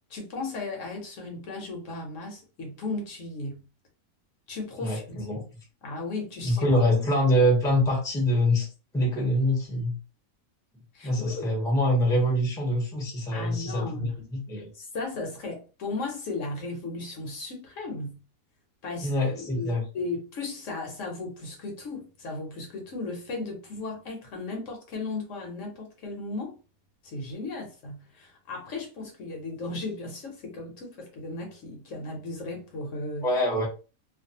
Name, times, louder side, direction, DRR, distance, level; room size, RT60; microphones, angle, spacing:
voice 1, 0.1-3.6 4.5-5.3 5.8-6.6 10.9-11.5 13.3-14.2 14.7-18.2 18.8-26.5 27.0-33.3, left 3 dB, 65° left, 1.0 m, -36 dB
voice 2, 4.8-5.4 6.4-8.7 8.9-10.0 11.0-14.7 19.0-19.8 33.2-33.7, equal, 5° left, 0.6 m, -25 dB
2.5 x 2.3 x 2.7 m
omnidirectional pair, 1.5 m